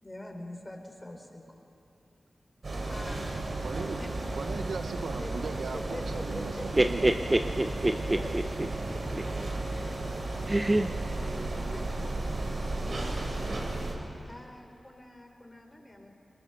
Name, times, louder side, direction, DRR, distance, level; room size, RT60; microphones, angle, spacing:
voice 1, 0.0-1.6 2.9-3.3 4.0-4.1 5.1-5.3 5.7-6.9 7.8-8.3 8.9-9.1 10.1-10.2 11.2-12.1 14.3-16.1, left 1 dB, 20° left, 4 dB, 3.6 m, -44 dB
sound 1, 2.6-13.9, right 2 dB, 65° right, 3.3 m, -34 dB
voice 2, 3.6-4.0 4.4-7.1, right 4 dB, 90° right, 7 dB, 1.1 m, -38 dB
voice 3, 6.8-8.4 10.5-10.9, right 1 dB, 25° right, 6 dB, 0.8 m, -26 dB
22.0 x 21.0 x 6.8 m, 2.8 s
cardioid pair, 45°, 0 cm